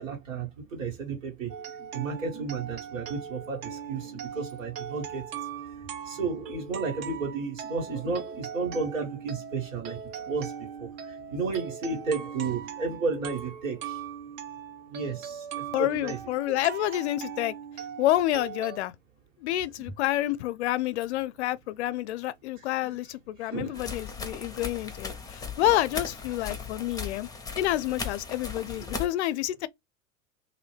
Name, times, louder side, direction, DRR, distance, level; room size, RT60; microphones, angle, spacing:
voice 1, 0.0-1.5 1.8-5.2 6.0-14.0 14.9-16.2 22.7-22.8 23.4-23.8 28.8-28.9, right 4 dB, 75° right, 1.7 m, -33 dB
sound 1, 1.5-18.8, right 7 dB, 45° right, 0.8 m, -40 dB
voice 2, 15.7-17.5 18.0-18.9 19.4-27.3 27.6-29.7, left 14 dB, 60° left, 0.5 m, -28 dB
sound 2, 23.7-29.1, left 5 dB, 10° left, 0.7 m, -37 dB
2.7 x 2.6 x 3.2 m
figure-of-eight pair, 85°, 39 cm